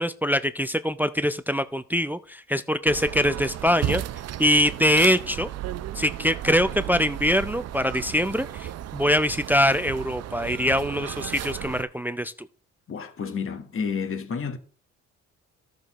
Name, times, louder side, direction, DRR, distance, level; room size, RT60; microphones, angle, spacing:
voice 1, 0.0-4.0 4.4-5.5 5.9-12.3, equal, 5° right, 0.4 m, -23 dB
sound 1, 2.9-11.8, right 12 dB, 60° right, 0.5 m, -34 dB
voice 2, 12.9-14.6, left 6 dB, 45° left, 1.4 m, -30 dB
13.5 x 6.6 x 3.0 m
cardioid pair, 90°, 30 cm